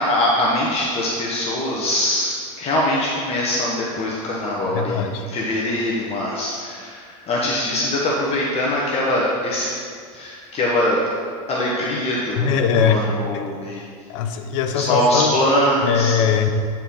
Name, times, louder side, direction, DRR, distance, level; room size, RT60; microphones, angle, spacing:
voice 1, 0.0-9.7 10.1-11.1 11.5-13.8 14.7-16.2, left 1 dB, 35° left, -4 dB, 1.1 m, -22 dB
voice 2, 4.7-5.2 12.4-13.1 13.3-13.5 14.1-15.4 15.8-16.5, left 7 dB, 65° left, 7 dB, 0.7 m, -21 dB
9.2 x 4.4 x 3.6 m, 2.1 s
supercardioid pair, 110°, 17 cm